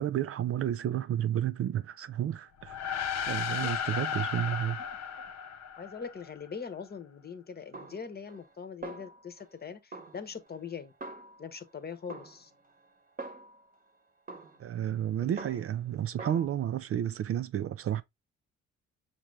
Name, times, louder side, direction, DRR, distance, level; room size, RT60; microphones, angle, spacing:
voice 1, 0.0-3.0 3.3-4.8 14.6-18.0, right 10 dB, 50° right, 0.4 m, -31 dB
sound 1, 2.6-6.3, left 7 dB, 60° left, 0.7 m, -34 dB
voice 2, 5.8-10.9 11.4-12.5 15.2-15.4, left 6 dB, 30° left, 0.9 m, -42 dB
Snare drum, 7.7-8.6 8.8-9.6 9.9-11.7 12.1-13.8 14.3-15.9 16.2-16.5, right 3 dB, 30° right, 1.0 m, -46 dB
5.9 x 2.6 x 3.1 m
cardioid pair, 90°, 30 cm